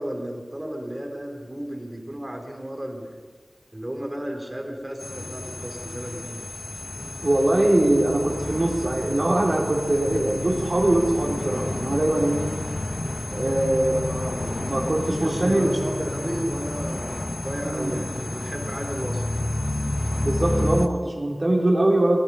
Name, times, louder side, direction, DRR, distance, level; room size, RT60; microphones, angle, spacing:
voice 1, 0.0-3.2 3.7-6.4 13.9-19.2, right 1 dB, 30° right, 1 dB, 3.5 m, -34 dB
sound 1, 5.0-20.9, left 1 dB, 45° left, 1.0 m, -30 dB
voice 2, 7.2-12.4 13.3-14.0 14.6-15.7 17.6-18.0 20.2-22.2, right 1 dB, 50° right, -2 dB, 4.0 m, -22 dB
19.0 x 12.5 x 5.6 m, 1.4 s
wide cardioid pair, 65°, 0 cm